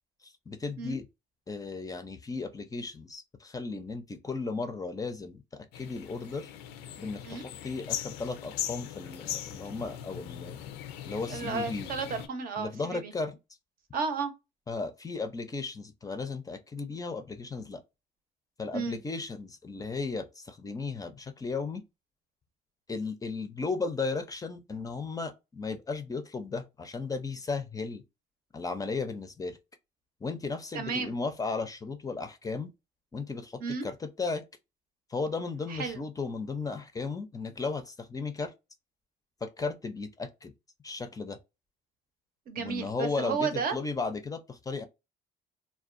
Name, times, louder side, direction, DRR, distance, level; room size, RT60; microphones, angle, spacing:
voice 1, 0.2-1.1 1.5-6.5 7.0-10.6 11.1-11.9 12.6-13.4 14.7-17.8 18.6-21.8 22.9-28.0 28.5-29.6 30.2-32.7 33.1-34.4 35.1-38.5 39.4-40.5 40.8-41.4 42.6-44.8, left 4 dB, 20° left, 0.4 m, -35 dB
sound 1, 5.7-12.3, left 10 dB, 90° left, 0.4 m, -39 dB
voice 2, 11.3-13.1 13.9-14.3 18.7-19.0 30.7-31.2 33.6-33.9 35.7-36.0 42.5-43.8, right 5 dB, 60° right, 0.7 m, -33 dB
2.5 x 2.2 x 2.4 m
cardioid pair, 110°, 17 cm